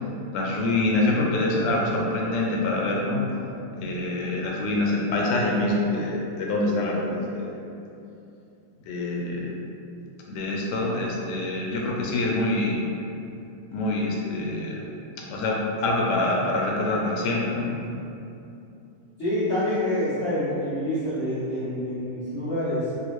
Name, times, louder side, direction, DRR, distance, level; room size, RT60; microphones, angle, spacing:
voice 1, 0.3-3.2 3.7-7.6 8.9-9.6 10.3-12.8 13.7-14.8 15.3-17.7, left 2 dB, 85° left, -2 dB, 1.2 m, -25 dB
voice 2, 19.2-22.9, left 1 dB, 55° left, -14 dB, 0.9 m, -27 dB
2.9 x 2.8 x 2.9 m, 2.7 s
omnidirectional pair, 1.8 m